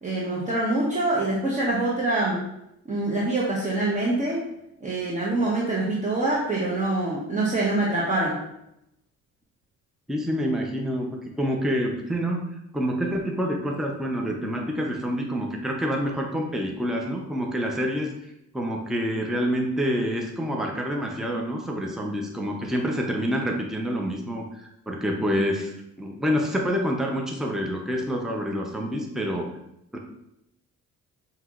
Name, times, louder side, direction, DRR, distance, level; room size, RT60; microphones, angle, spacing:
voice 1, 0.0-2.4 2.9-4.4 4.8-8.4, right 2 dB, 25° right, -6 dB, 1.0 m, -25 dB
voice 2, 10.1-12.4 12.7-18.1 18.5-25.7 26.0-29.5 29.9-30.0, equal, ahead, 0 dB, 0.6 m, -27 dB
5.6 x 2.9 x 2.4 m, 0.81 s
cardioid pair, 90°, 30 cm